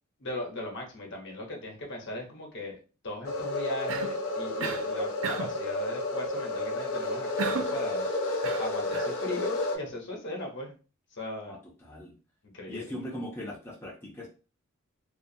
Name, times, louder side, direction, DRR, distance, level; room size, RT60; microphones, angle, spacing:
voice 1, 0.2-2.8 3.0-8.1 8.6-10.8 11.1-11.6 12.5-12.9, left 1 dB, 60° left, 0 dB, 0.9 m, -38 dB
sound 1, 3.2-9.8, left 2 dB, 75° left, 0.5 m, -31 dB
Cough, 3.9-4.2 4.6-4.9 5.2-5.6 7.4-7.8 8.4-9.2, right 5 dB, 70° right, 0.4 m, -34 dB
voice 2, 11.5-12.2 12.7-14.3, equal, 10° left, -4 dB, 0.5 m, -40 dB
2.4 x 2.4 x 2.7 m, 0.33 s
head